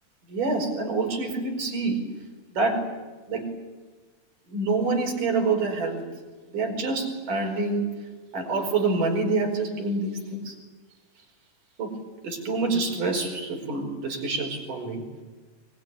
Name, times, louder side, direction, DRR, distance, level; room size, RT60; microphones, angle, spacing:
voice 1, 0.3-2.1 2.5-2.9 3.3-3.5 4.5-6.1 6.5-7.9 8.3-10.6 11.8-12.0 12.2-15.0, right 3 dB, 85° right, 2 dB, 6.7 m, -27 dB
24.5 x 22.0 x 9.8 m, 1.4 s
omnidirectional pair, 3.6 m